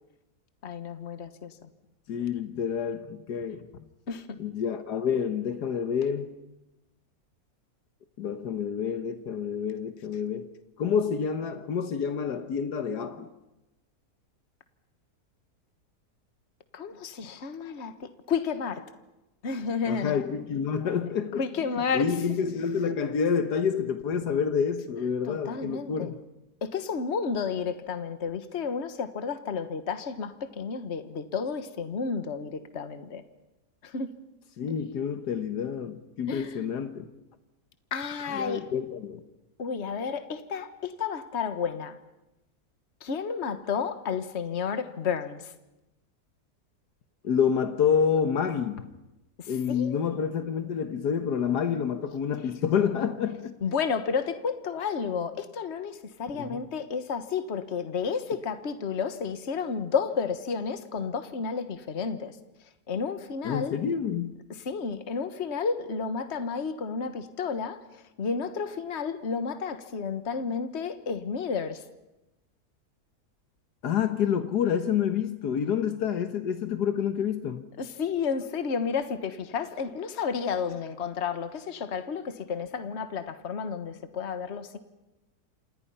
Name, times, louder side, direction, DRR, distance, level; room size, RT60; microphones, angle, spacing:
voice 1, 0.6-1.5 4.1-4.4 16.7-18.9 19.4-20.1 21.4-22.1 25.2-26.2 26.6-33.2 33.8-34.1 36.3-36.6 37.9-38.6 39.6-42.0 43.0-45.5 49.4-50.0 53.6-62.4 62.9-63.7 64.6-67.8 68.2-71.8 77.8-84.8, left 5 dB, 45° left, 1.6 m, -31 dB
voice 2, 2.1-3.7 4.4-6.3 8.2-10.5 10.8-13.3 19.8-21.4 21.9-26.2 34.6-37.1 38.3-39.2 47.2-48.9 49.5-53.5 56.3-56.6 63.4-64.3 73.8-77.7, left 7 dB, 90° left, 1.8 m, -28 dB
29.0 x 26.5 x 5.6 m
omnidirectional pair, 1.7 m